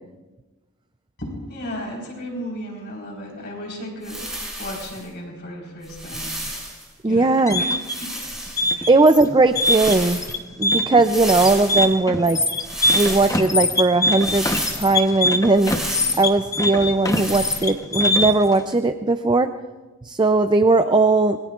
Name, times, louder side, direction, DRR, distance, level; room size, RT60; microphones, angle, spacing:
voice 1, 1.2-4.3 4.6-6.4 7.0-8.3 8.7-8.9, equal, 50° left, -2 dB, 4.3 m, -34 dB
sound 1, 4.0-5.0 5.8-6.8 7.8-8.7 9.5-10.3 11.0-11.9 12.6-13.4 14.2-14.9 15.5-16.2 17.1-17.7, right 1 dB, ahead, 6.8 m, -31 dB
voice 2, 7.0-7.6 8.9-10.2 10.6-12.5 12.9-14.5 14.7-15.7 16.2-19.5 20.0-21.4, right 3 dB, 20° right, 9 dB, 0.5 m, -18 dB
sound 2, 7.2-18.5, left 1 dB, 15° left, 1.0 m, -23 dB
26.5 x 21.5 x 2.5 m, 1.2 s
head